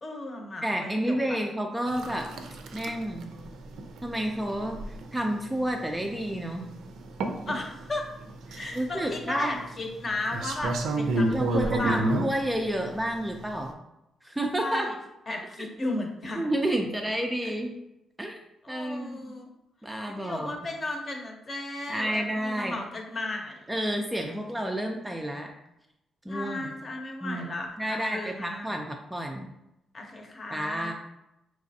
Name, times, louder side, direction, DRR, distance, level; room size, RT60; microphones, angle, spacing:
voice 1, 0.0-1.4 2.1-2.2 7.5-8.1 8.5-12.2 14.6-14.9 15.3-16.5 17.4-17.5 18.6-19.5 20.1-23.6 26.3-28.7 29.9-30.9, left 2 dB, 35° left, 2 dB, 0.7 m, -35 dB
voice 2, 0.6-2.3 2.7-3.3 4.0-6.7 8.7-9.6 11.3-13.8 14.2-14.9 16.4-17.8 18.2-18.3 18.7-19.3 19.8-20.7 21.9-22.8 23.7-25.5 26.3-26.7 27.2-29.5 30.5-30.9, right 1 dB, 5° right, 2 dB, 0.4 m, -30 dB
sound 1, 1.9-13.7, right 2 dB, 80° right, 0.5 m, -32 dB
4.9 x 3.2 x 2.7 m, 0.89 s
cardioid pair, 135°, 0 cm